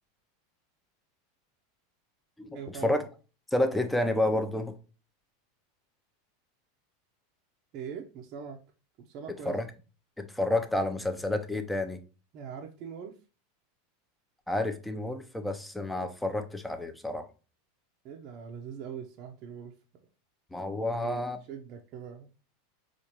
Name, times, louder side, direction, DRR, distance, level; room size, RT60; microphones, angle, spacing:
voice 1, 2.5-3.0 7.7-8.6 9.0-9.6 12.3-13.2 18.0-19.7 20.9-22.3, right 7 dB, 50° right, 0.5 m, -42 dB
voice 2, 3.5-4.8 9.5-9.7 10.2-12.0 14.5-17.3 20.5-21.4, left 1 dB, 5° left, 0.5 m, -29 dB
4.3 x 2.4 x 2.8 m
hypercardioid pair, 100°, 0 cm